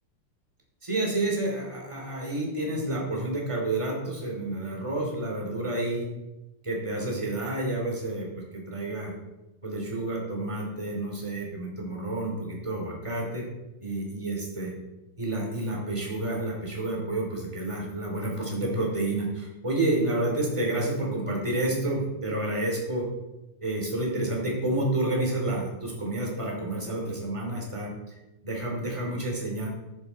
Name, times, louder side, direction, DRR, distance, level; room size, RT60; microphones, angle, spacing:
voice 1, 0.8-6.1 6.6-8.3 8.5-9.1 9.6-13.5 13.8-14.7 15.2-23.1 23.6-28.2 28.4-29.7, right 2 dB, 10° right, -2 dB, 2.3 m, -29 dB
13.0 x 9.7 x 4.2 m, 1.0 s
omnidirectional pair, 4.2 m